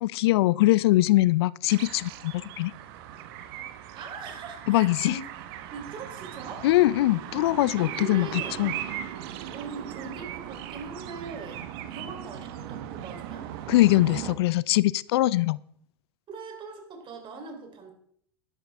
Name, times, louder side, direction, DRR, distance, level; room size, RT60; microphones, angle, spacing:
voice 1, 0.0-2.7 4.7-5.2 6.6-8.7 13.7-15.6, left 17 dB, 70° left, 22 dB, 0.4 m, -22 dB
sound 1, 1.7-14.4, right 11 dB, 65° right, 1.2 m, -38 dB
voice 2, 3.9-5.2 5.7-6.7 7.8-8.7 9.5-13.5 16.3-17.9, right 4 dB, 35° right, 3 dB, 3.6 m, -41 dB
12.0 x 11.0 x 3.5 m, 0.66 s
hypercardioid pair, 90°, 14 cm